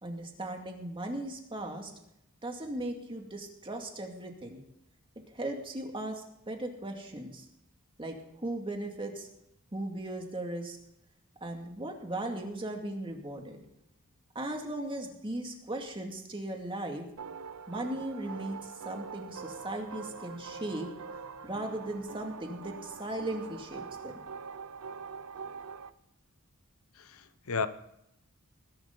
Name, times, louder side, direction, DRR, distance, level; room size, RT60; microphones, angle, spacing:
voice 1, 0.0-1.9 2.4-4.6 5.3-7.5 8.0-9.3 9.7-10.8 11.4-13.6 14.3-17.1 17.7-20.9 21.4-24.1, right 1 dB, 25° right, 3 dB, 2.3 m, -37 dB
sound 1, 17.2-25.9, right 5 dB, 75° right, 0.7 m, -44 dB
voice 2, 27.0-27.7, left 5 dB, 70° left, 13 dB, 0.9 m, -33 dB
20.0 x 11.5 x 3.9 m, 0.80 s
head